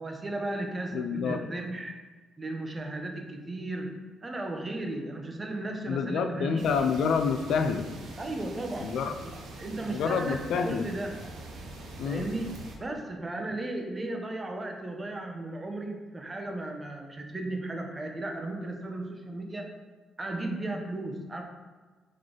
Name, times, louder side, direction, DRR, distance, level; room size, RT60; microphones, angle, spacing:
voice 1, 0.0-2.0 2.4-6.7 8.2-8.9 9.2-9.3 9.6-11.2 12.0-19.7 20.2-21.4, right 2 dB, 25° right, 3 dB, 0.6 m, -35 dB
voice 2, 0.9-1.4 5.9-7.9 8.8-9.1 9.9-10.8 12.0-12.3, left 6 dB, 75° left, 7 dB, 0.3 m, -28 dB
sound 1, 6.6-12.8, right 2 dB, 75° right, 0.7 m, -44 dB
3.8 x 3.2 x 3.7 m, 1.4 s
cardioid pair, 90°, 0 cm